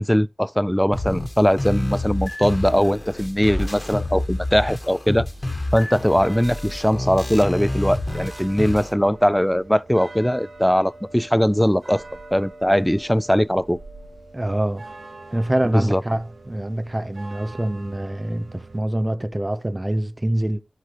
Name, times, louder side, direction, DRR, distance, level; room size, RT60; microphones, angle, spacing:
voice 1, 0.0-5.3 5.7-12.0 12.3-13.8 15.7-16.0, equal, 5° left, 0.3 m, -20 dB
sound 1, 0.9-8.9, left 1 dB, 35° left, 1.5 m, -28 dB
sound 2, 5.2-18.8, right 2 dB, 80° right, 1.1 m, -43 dB
voice 2, 14.3-14.8 15.3-20.6, right 1 dB, 25° right, 0.7 m, -25 dB
13.0 x 4.8 x 3.0 m
cardioid pair, 50°, 0 cm